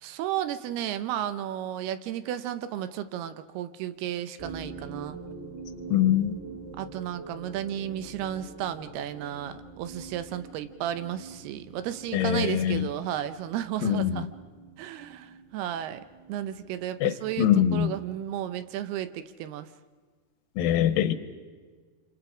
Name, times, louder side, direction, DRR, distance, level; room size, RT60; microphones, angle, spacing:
voice 1, 0.0-5.2 6.8-14.3 14.8-19.7, right 11 dB, 80° right, 11 dB, 2.9 m, -33 dB
sound 1, 4.4-19.3, right 4 dB, 20° right, 2.2 m, -45 dB
voice 2, 5.9-6.4 12.1-12.9 13.8-14.2 17.0-17.9 20.6-21.1, left 11 dB, 70° left, 12 dB, 2.5 m, -23 dB
28.0 x 27.0 x 5.0 m, 1.4 s
omnidirectional pair, 4.5 m